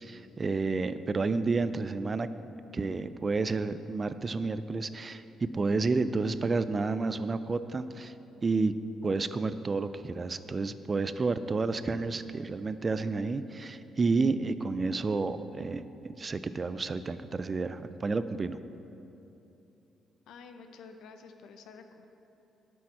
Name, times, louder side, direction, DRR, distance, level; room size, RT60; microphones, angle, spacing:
voice 1, 0.0-8.1 8.4-8.7 9.0-15.8 16.1-18.6, right 3 dB, 35° right, 12 dB, 0.4 m, -30 dB
voice 2, 20.3-22.0, left 5 dB, 80° left, 7 dB, 0.7 m, -50 dB
12.0 x 6.4 x 4.3 m, 2.9 s
cardioid pair, 90°, 0 cm